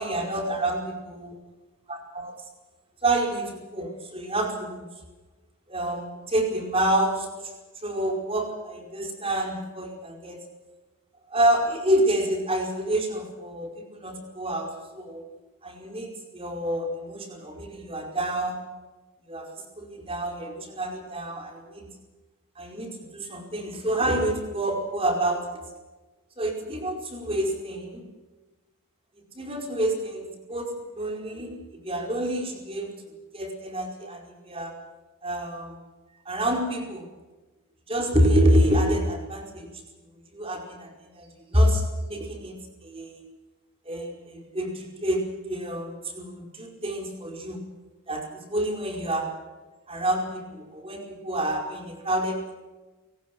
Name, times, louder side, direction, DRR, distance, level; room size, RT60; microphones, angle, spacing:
voice 1, 0.0-0.8 1.1-1.3 1.9-2.3 3.0-4.9 5.7-7.3 7.8-10.4 11.3-15.2 15.6-18.6 19.3-19.5 19.8-21.9 22.6-25.6 26.4-28.1 29.3-33.0 33.3-34.7 35.2-35.8 36.2-37.1 37.9-39.7 40.3-42.6 42.8-43.3 43.8-47.6 48.1-49.3 49.9-52.5, right 1 dB, 25° right, 3 dB, 4.9 m, -27 dB
30.0 x 18.5 x 6.1 m, 1.2 s
head